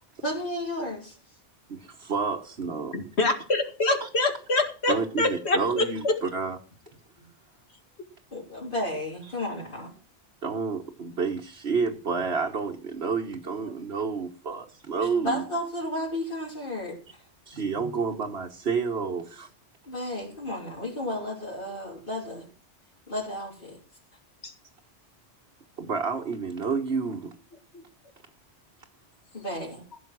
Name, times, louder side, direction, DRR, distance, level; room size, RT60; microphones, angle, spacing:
voice 1, 0.2-1.2 8.3-9.9 15.2-17.2 19.9-22.5 23.1-23.8 29.3-29.8, left 1 dB, 45° left, 3.7 m, -33 dB
voice 2, 1.7-3.0 4.0-4.1 4.9-6.6 9.2-9.3 10.4-15.4 17.5-19.5 25.8-27.3, right 5 dB, 60° right, 1.5 m, -29 dB
voice 3, 2.9-6.1 24.4-24.5 27.7-27.8, left 2 dB, 60° left, 2.4 m, -26 dB
15.5 x 7.1 x 6.1 m
omnidirectional pair, 1.2 m